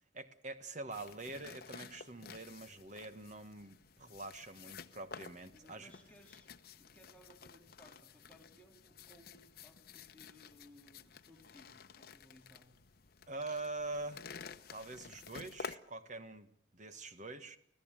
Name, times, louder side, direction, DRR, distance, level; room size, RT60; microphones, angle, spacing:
voice 1, 0.1-5.9 13.3-14.2 14.7-17.6, right 2 dB, 40° right, 1.5 m, -45 dB
sound 1, 0.9-15.8, left 5 dB, 55° left, 0.9 m, -52 dB
voice 2, 5.5-12.7, left 1 dB, 5° left, 3.3 m, -62 dB
25.5 x 16.0 x 9.0 m
head